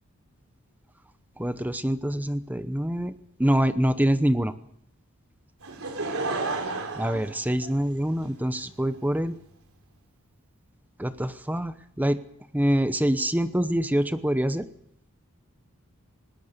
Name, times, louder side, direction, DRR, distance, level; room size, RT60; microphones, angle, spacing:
voice 1, 1.4-3.1 3.4-4.5 7.0-9.3 11.0-12.2 12.5-14.6, equal, 10° right, 11 dB, 0.9 m, -25 dB
Laughter / Crowd, 5.6-8.2 8.9-9.0, right 3 dB, 70° right, 4.1 m, -31 dB
20.5 x 19.5 x 6.8 m, 0.73 s
head